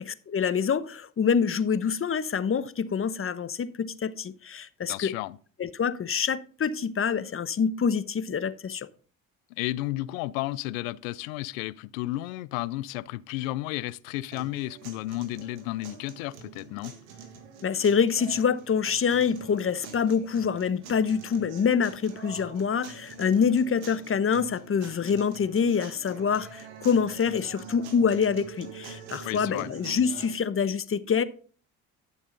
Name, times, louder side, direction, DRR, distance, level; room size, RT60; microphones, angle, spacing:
voice 1, 0.3-5.1 5.6-8.9 17.6-31.2, left 6 dB, 35° left, 1.0 m, -26 dB
voice 2, 4.9-5.4 9.5-16.9 29.3-29.7, left 17 dB, 85° left, 0.5 m, -33 dB
sound 1, 14.3-30.3, right 6 dB, 85° right, 1.7 m, -45 dB
11.5 x 7.2 x 4.0 m
hypercardioid pair, 60°, 39 cm